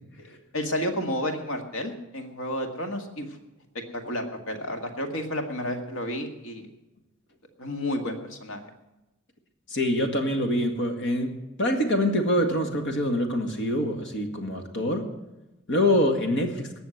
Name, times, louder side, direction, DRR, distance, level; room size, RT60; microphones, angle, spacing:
voice 1, 0.3-3.4 3.7-6.7 7.6-8.6, left 1 dB, 90° left, 5 dB, 1.9 m, -31 dB
voice 2, 9.7-15.1 15.7-16.7, left 1 dB, 60° left, 5 dB, 1.9 m, -25 dB
19.0 x 6.9 x 7.9 m, 0.98 s
head